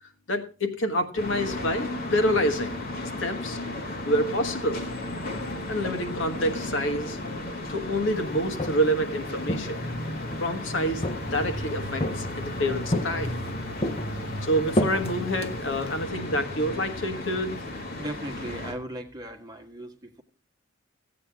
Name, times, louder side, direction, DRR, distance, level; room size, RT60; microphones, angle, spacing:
voice 1, 0.3-2.7 3.2-3.6 4.0-4.8 5.7-7.2 7.7-9.8 10.4-11.0 11.3-13.3 14.1-17.6, equal, 70° left, 7 dB, 1.4 m, -27 dB
sound 1, 1.2-18.7, left 1 dB, 50° left, 1.8 m, -34 dB
Walk footsteps, 8.3-9.0 9.5-10.5 11.0-11.6 12.0-12.5 12.9-13.5 13.8-16.0, left 1 dB, 30° left, 0.7 m, -30 dB
voice 2, 18.0-20.2, right 1 dB, 20° right, 3 dB, 1.5 m, -37 dB
15.0 x 8.5 x 3.5 m, 0.35 s
head